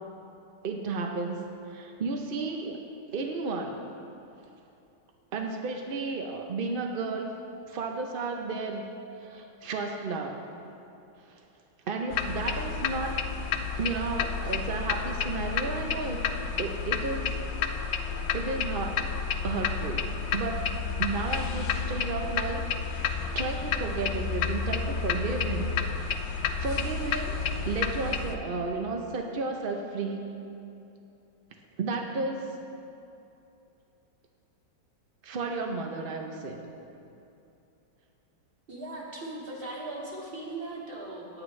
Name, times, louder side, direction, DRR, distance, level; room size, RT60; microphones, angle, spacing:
voice 1, 0.6-2.8 3.1-3.7 5.3-7.3 7.7-8.9 9.2-10.4 11.3-11.4 11.9-13.2 13.8-16.2 16.6-17.4 17.7-19.0 19.4-20.6 21.0-22.6 23.0-25.7 26.0-26.2 26.6-30.2 31.8-32.4 35.2-36.7, right 3 dB, 60° right, 3 dB, 0.5 m, -33 dB
sound 1, 12.1-28.3, left 6 dB, 90° left, 1.3 m, -31 dB
voice 2, 38.7-41.4, right 2 dB, 30° right, -4 dB, 2.0 m, -38 dB
18.5 x 8.8 x 3.2 m, 2.7 s
omnidirectional pair, 1.9 m